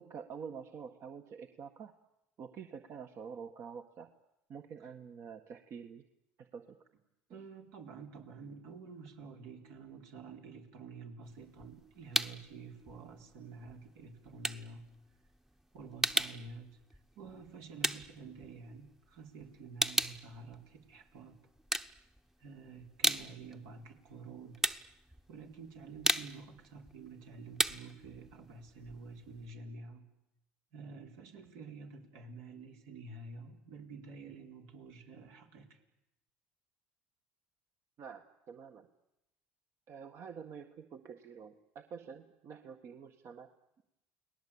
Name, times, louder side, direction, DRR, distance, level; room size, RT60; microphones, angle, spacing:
voice 1, 0.0-1.9 2.4-4.1 4.5-6.0 6.4-6.8 7.3-7.4 38.0-38.9 39.9-43.5, right 6 dB, 50° right, 6 dB, 1.6 m, -47 dB
voice 2, 7.3-14.9 15.7-16.8 17.1-21.5 22.4-24.6 25.3-30.1 30.7-35.8, right 4 dB, 75° right, 3 dB, 4.2 m, -49 dB
sound 1, 11.3-12.5 12.9-19.1 19.4-21.2 21.6-22.4 22.8-29.5, right 1 dB, 5° right, 1.0 m, -35 dB
30.0 x 19.5 x 8.8 m, 0.89 s
supercardioid pair, 85°, 6 cm